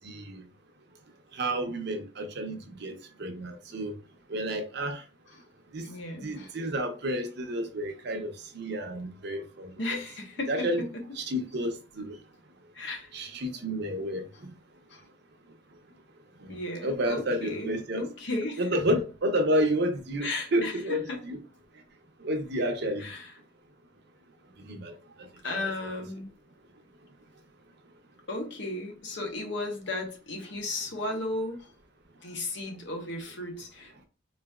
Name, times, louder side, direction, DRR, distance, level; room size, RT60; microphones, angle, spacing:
voice 1, 0.0-0.4 1.3-2.9 3.2-3.9 4.3-5.0 5.7-5.9 6.2-9.7 10.5-10.8 11.2-12.2 13.1-14.5 16.4-18.0 18.6-21.4 22.2-23.1 24.6-24.9 25.5-25.7, equal, 60° right, 0.7 m, -30 dB
voice 2, 5.8-6.5 9.8-10.9 12.7-13.1 14.3-14.4 14.9-15.0 16.5-18.8 20.2-20.8 21.1-21.2 23.0-23.3 25.4-26.3 28.3-31.7 32.2-34.1, left 2 dB, 70° left, 1.0 m, -35 dB
4.0 x 2.7 x 2.3 m
head